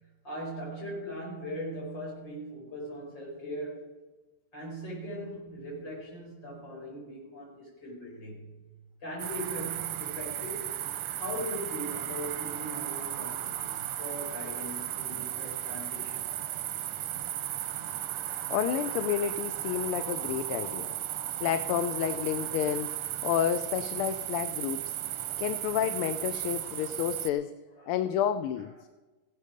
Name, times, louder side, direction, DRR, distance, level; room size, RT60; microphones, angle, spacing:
voice 1, 0.2-3.9 4.5-8.6 9.0-10.7 11.2-16.3 21.1-21.5 26.3-27.2 27.7-28.1, equal, 55° left, -3 dB, 5.6 m, -40 dB
sound 1, 9.2-27.3, right 12 dB, 90° right, 1.7 m, -35 dB
voice 2, 18.3-20.9 21.4-25.0 25.4-27.5 27.9-28.7, left 10 dB, 85° left, 11 dB, 1.5 m, -30 dB
16.0 x 12.0 x 5.1 m, 1.2 s
omnidirectional pair, 2.4 m